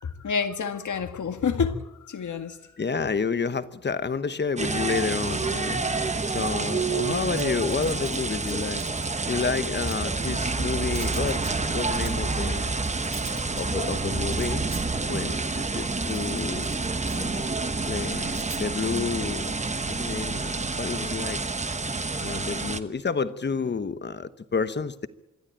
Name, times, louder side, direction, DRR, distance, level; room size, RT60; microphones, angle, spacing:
voice 1, 0.0-2.6, left 6 dB, 80° left, 1.8 m, -28 dB
voice 2, 2.8-5.8 6.3-8.8 9.3-11.5 11.7-12.8 13.5-14.7 15.1-16.8 17.1-17.5 17.9-19.5 19.9-21.4 22.2-25.1, left 5 dB, 35° left, 1.0 m, -30 dB
sound 1, 4.6-22.8, right 3 dB, 25° right, 1.0 m, -28 dB
sound 2, 7.1-9.2 9.7-10.5 10.8-11.7 11.9-12.2 12.7-16.8 17.0-17.4 18.3-18.6, right 4 dB, 45° right, 2.7 m, -43 dB
26.0 x 12.0 x 8.8 m
wide cardioid pair, 160°, 30 cm